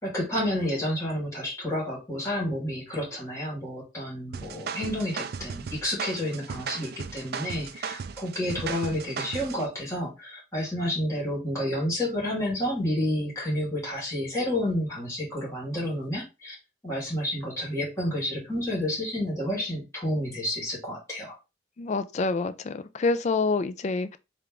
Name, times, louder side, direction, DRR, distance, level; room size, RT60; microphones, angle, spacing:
voice 1, 0.0-16.6 16.8-21.4, left 1 dB, 15° left, 2.3 m, -30 dB
sound 1, 4.3-9.6, right 6 dB, 60° right, 0.4 m, -36 dB
voice 2, 21.8-24.2, left 3 dB, 40° left, 0.4 m, -27 dB
3.5 x 3.3 x 3.6 m
head